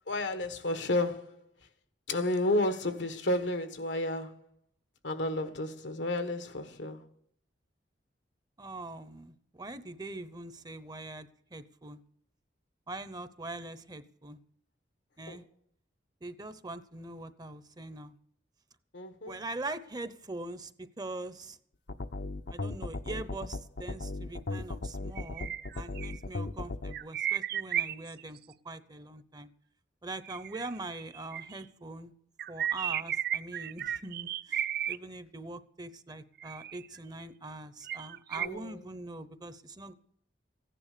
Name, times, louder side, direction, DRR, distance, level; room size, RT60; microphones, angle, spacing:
voice 1, 0.1-1.4 2.1-4.5 5.0-7.1 15.3-15.4 18.9-19.4 38.4-38.8, left 1 dB, 85° left, 1.4 m, -32 dB
voice 2, 8.6-12.0 12.9-14.4 15.2-15.5 16.2-18.1 19.3-21.6 22.5-28.4 28.6-29.5 30.0-32.1 32.5-39.9, right 2 dB, 20° right, 0.8 m, -42 dB
sound 1, 21.9-26.9, left 2 dB, 70° left, 0.8 m, -36 dB
sound 2, 25.2-26.2 26.9-28.4 30.2-31.6 32.4-35.0 36.4-37.0 37.9-38.5, right 10 dB, 60° right, 0.5 m, -34 dB
15.5 x 10.0 x 6.8 m
head